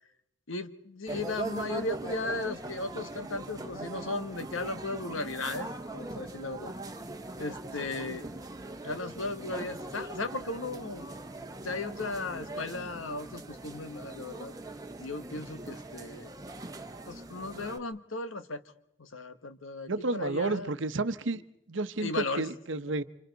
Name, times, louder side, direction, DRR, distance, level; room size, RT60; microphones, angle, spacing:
voice 1, 0.5-5.7 5.9-6.7 7.4-8.3 8.8-11.0 11.6-14.5 15.0-16.3 17.1-18.6 19.0-20.7 22.0-22.4, left 3 dB, 90° left, 11 dB, 1.2 m, -36 dB
sound 1, 1.1-17.8, right 2 dB, 20° right, 1.1 m, -41 dB
voice 2, 7.8-8.2 19.9-21.4 21.7-23.0, right 2 dB, 75° right, 11 dB, 1.0 m, -31 dB
29.5 x 26.0 x 4.0 m, 0.78 s
head